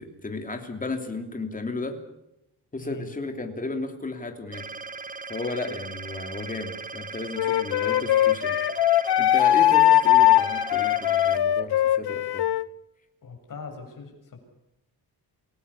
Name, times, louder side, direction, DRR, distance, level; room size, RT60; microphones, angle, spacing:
voice 1, 0.0-2.0 2.7-4.7 5.3-8.6 9.2-12.5, left 2 dB, 20° left, 5 dB, 3.1 m, -34 dB
voice 2, 2.8-3.1 13.2-14.1, left 4 dB, 50° left, 3 dB, 7.2 m, -40 dB
sound 1, 4.5-11.4, right 4 dB, 20° right, 0.8 m, -38 dB
Wind instrument woodwind instrument, 7.4-12.7, left 13 dB, 70° left, 0.8 m, -20 dB
28.5 x 18.0 x 7.1 m, 0.89 s
wide cardioid pair, 165°, 40 cm